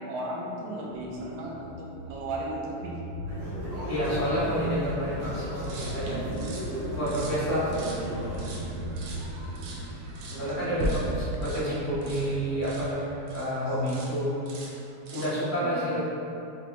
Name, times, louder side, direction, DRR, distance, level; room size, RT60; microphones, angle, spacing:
voice 1, 0.0-3.0 10.3-10.9 11.6-11.8 15.6-15.8, right 1 dB, 70° right, -3 dB, 1.3 m, -36 dB
sound 1, 0.9-7.8, equal, 75° left, 1.3 m, -44 dB
sound 2, 3.3-8.4, equal, 50° right, 1.1 m, -35 dB
voice 2, 3.9-5.4 5.9-6.2 7.0-7.7 10.4-14.4 15.1-16.0, equal, 45° left, -14 dB, 1.1 m, -29 dB
sound 3, 5.6-13.5 13.9-14.2 14.5-15.4, right 1 dB, 85° right, 0.8 m, -36 dB
4.6 x 3.3 x 2.8 m, 2.9 s
omnidirectional pair, 2.3 m